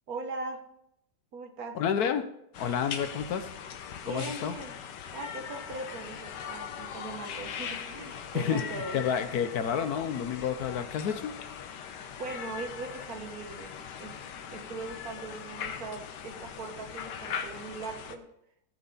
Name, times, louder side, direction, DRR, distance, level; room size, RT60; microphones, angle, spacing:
voice 1, 0.1-0.6 1.3-1.8 4.0-4.8 5.1-9.0 12.2-14.2 14.5-18.2, right 3 dB, 60° right, 5 dB, 1.6 m, -40 dB
voice 2, 1.7-2.3 2.6-3.5 4.1-4.5 8.3-11.3, left 8 dB, 65° left, 10 dB, 1.2 m, -30 dB
sound 1, 2.5-18.2, left 7 dB, 85° left, 1.5 m, -40 dB
17.0 x 6.1 x 3.9 m, 0.78 s
omnidirectional pair, 1.8 m